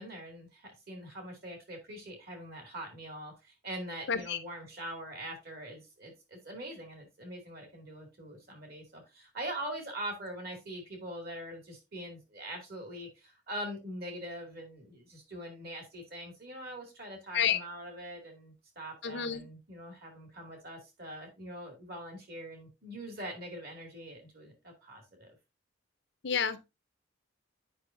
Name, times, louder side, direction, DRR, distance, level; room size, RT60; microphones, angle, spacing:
voice 1, 0.0-25.4, right 1 dB, 45° right, 2.3 m, -43 dB
voice 2, 4.1-4.4 17.3-17.6 19.0-19.4 26.2-26.7, left 7 dB, 55° left, 0.6 m, -29 dB
8.5 x 5.4 x 2.5 m
head